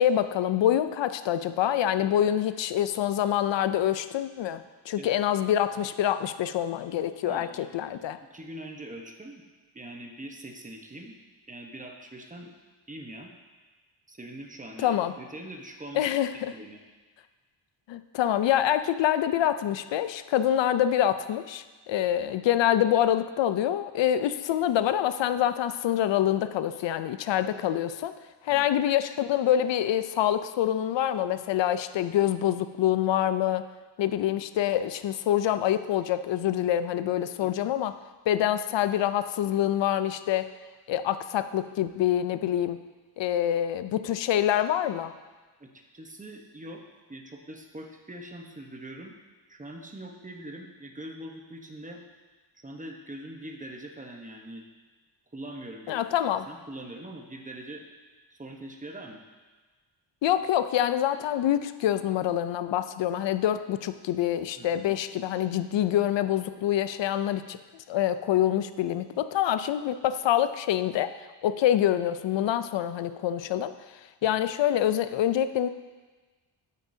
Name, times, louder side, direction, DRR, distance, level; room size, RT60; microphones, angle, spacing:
voice 1, 0.0-8.2 14.8-15.1 15.9-16.5 17.9-28.1 28.4-33.7 34.0-38.0 38.3-40.5 40.9-42.8 43.2-45.1 55.9-56.5 60.2-71.1 71.4-73.7 74.2-75.7, left 11 dB, 70° left, 12 dB, 0.5 m, -26 dB
voice 2, 7.3-7.7 8.3-9.4 9.7-11.2 11.5-12.5 12.9-13.3 14.1-16.1 16.5-16.8 28.5-28.7 37.4-37.8 45.6-46.8 47.1-49.2 49.5-52.0 52.6-54.7 55.3-56.0 56.5-57.9 58.3-59.2 64.6-64.9, right 1 dB, 15° right, 2 dB, 1.0 m, -43 dB
9.1 x 8.2 x 2.7 m, 1.3 s
cardioid pair, 95°, 46 cm